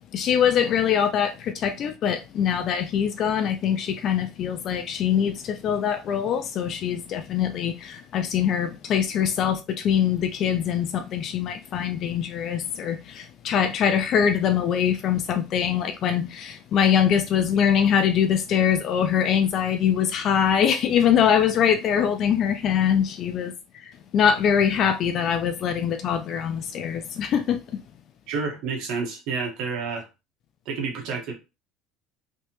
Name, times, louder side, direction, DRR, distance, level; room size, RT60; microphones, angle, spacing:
voice 1, 0.1-27.6, left 8 dB, 45° left, 0.4 m, -23 dB
voice 2, 28.3-30.0 30.6-31.3, right 4 dB, 65° right, 1.4 m, -29 dB
3.3 x 2.9 x 3.0 m
supercardioid pair, 125°, 0 cm